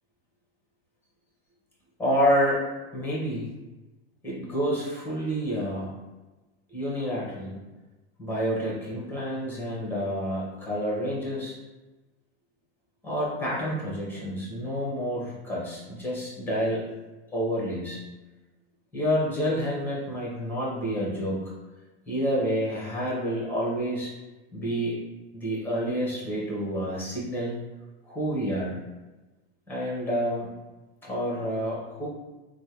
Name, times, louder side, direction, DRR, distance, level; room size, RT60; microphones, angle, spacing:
voice 1, 2.0-2.6 2.9-3.5 4.2-5.9 6.7-7.5 8.2-11.5 13.0-16.8 17.3-18.0 18.9-21.5 22.1-24.1 24.5-25.0 25.3-27.6 28.1-28.8 29.7-30.5 31.0-32.1, equal, 5° left, -5 dB, 1.3 m, -28 dB
3.3 x 2.2 x 3.0 m, 1.1 s
hypercardioid pair, 105°, 33 cm